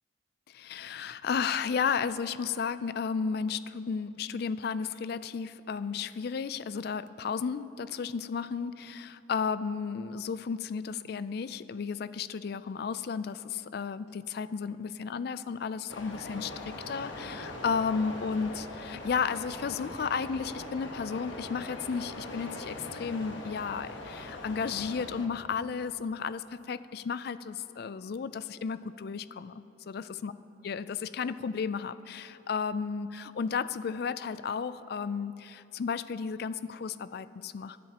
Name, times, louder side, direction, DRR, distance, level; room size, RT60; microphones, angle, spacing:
voice 1, 0.5-30.3 30.6-37.8, left 6 dB, 50° left, 15 dB, 0.3 m, -33 dB
sound 1, 15.9-25.3, left 2 dB, 70° left, 1.2 m, -41 dB
22.5 x 10.5 x 2.9 m, 2.8 s
head